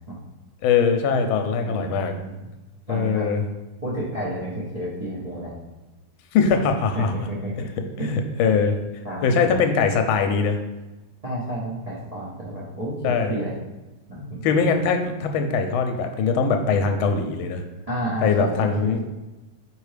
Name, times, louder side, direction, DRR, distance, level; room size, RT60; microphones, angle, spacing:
voice 1, 0.6-2.1 2.9-3.4 6.3-7.1 8.1-8.8 9.2-10.6 13.0-13.5 14.4-17.6 18.2-19.0, left 5 dB, 80° left, 6 dB, 1.4 m, -21 dB
voice 2, 1.6-2.5 2.9-3.3 3.8-5.5 7.3-7.7 8.0-8.1 9.0-9.7 11.2-13.5 14.1-14.5 17.9-19.0, right 1 dB, 75° right, -8 dB, 0.3 m, -31 dB
4.6 x 3.4 x 3.2 m, 1.1 s
omnidirectional pair, 2.3 m